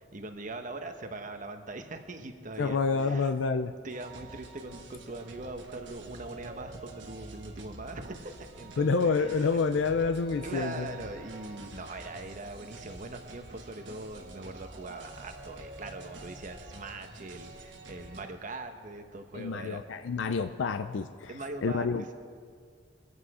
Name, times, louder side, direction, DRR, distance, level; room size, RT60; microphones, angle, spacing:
voice 1, 0.0-3.3 3.8-9.5 10.4-19.8 21.3-22.1, right 2 dB, 45° right, 6 dB, 1.1 m, -41 dB
voice 2, 2.6-3.7 8.8-10.9 19.3-21.3 21.6-22.1, left 4 dB, 85° left, 8 dB, 0.5 m, -28 dB
sound 1, 3.9-18.3, right 2 dB, 70° right, 1.6 m, -47 dB
23.5 x 8.2 x 4.9 m, 2.1 s
head